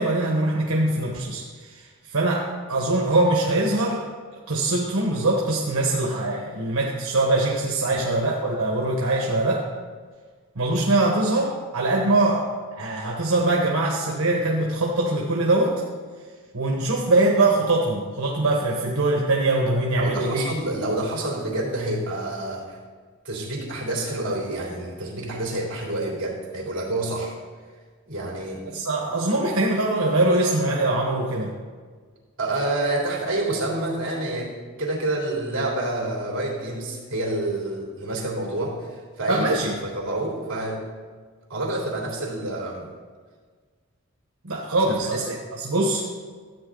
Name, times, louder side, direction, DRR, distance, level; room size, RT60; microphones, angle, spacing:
voice 1, 0.0-1.4 1.7-1.8 2.1-4.1 4.5-9.7 10.5-12.5 12.7-15.7 16.5-20.5 28.7-31.5 39.3-39.7 44.4-46.0, right 2 dB, 90° right, -2 dB, 1.3 m, -22 dB
voice 2, 20.0-22.8 23.2-27.3 28.1-28.6 32.4-34.5 34.8-39.5 39.8-40.8 41.5-42.9 44.7-45.3, right 2 dB, 60° right, -2 dB, 3.3 m, -28 dB
13.5 x 8.7 x 4.0 m, 1.6 s
head